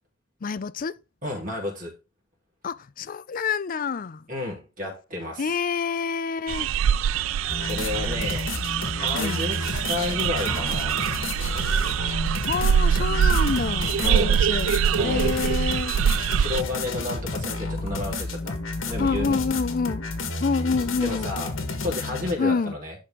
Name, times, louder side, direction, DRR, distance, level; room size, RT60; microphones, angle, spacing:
voice 1, 0.4-1.0 2.6-4.3 5.4-6.7 9.1-9.5 12.5-16.0 19.0-20.1 20.4-21.5 22.4-22.8, left 5 dB, 45° left, 0.4 m, -27 dB
voice 2, 1.2-2.0 4.3-5.5 7.6-8.5 8.9-11.0 14.0-14.4 14.9-15.4 16.3-18.5 18.9-19.4 21.0-21.5 21.8-22.9, left 2 dB, 40° right, 3.6 m, -31 dB
sound 1, 6.5-16.6, right 8 dB, 70° right, 0.3 m, -24 dB
sound 2, 7.5-22.3, left 3 dB, 70° left, 1.5 m, -31 dB
sound 3, 10.5-11.5, equal, ahead, 2.2 m, -40 dB
11.0 x 4.3 x 3.7 m
head